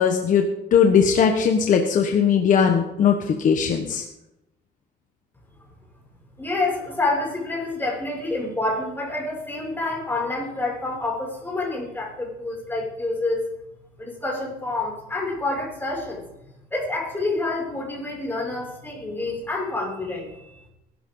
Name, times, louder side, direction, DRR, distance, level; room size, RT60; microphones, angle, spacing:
voice 1, 0.0-4.0, left 7 dB, 50° left, 4 dB, 1.4 m, -19 dB
voice 2, 6.4-13.4 14.0-16.3 16.7-20.6, left 2 dB, 10° left, -3 dB, 6.5 m, -28 dB
21.0 x 12.5 x 4.0 m, 0.90 s
cardioid pair, 110°, 17 cm